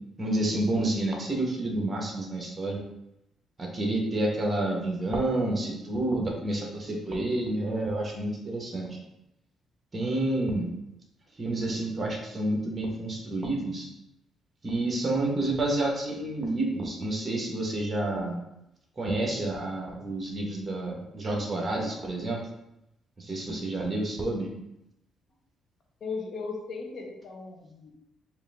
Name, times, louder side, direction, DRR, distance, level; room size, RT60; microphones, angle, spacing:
voice 1, 0.2-2.8 3.6-9.0 9.9-10.7 11.4-13.9 14.6-18.4 19.0-22.4 23.2-24.5, right 2 dB, 30° right, -1 dB, 1.2 m, -29 dB
voice 2, 26.0-27.9, left 4 dB, 60° left, 1 dB, 0.9 m, -37 dB
4.8 x 2.7 x 3.5 m, 0.86 s
cardioid pair, 90°, 0 cm